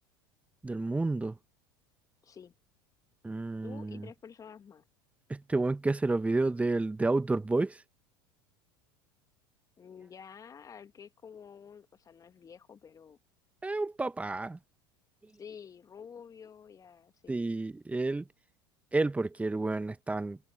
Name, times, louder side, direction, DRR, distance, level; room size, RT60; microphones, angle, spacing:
voice 1, 0.6-1.4 3.2-4.1 5.3-7.8 13.6-14.6 17.3-18.3 18.9-20.4, right 2 dB, 10° right, 1.2 m, -30 dB
voice 2, 2.2-2.5 3.6-4.8 9.8-13.2 15.4-17.5, left 7 dB, 25° left, 2.3 m, -50 dB
figure-of-eight pair, 75°, 13 cm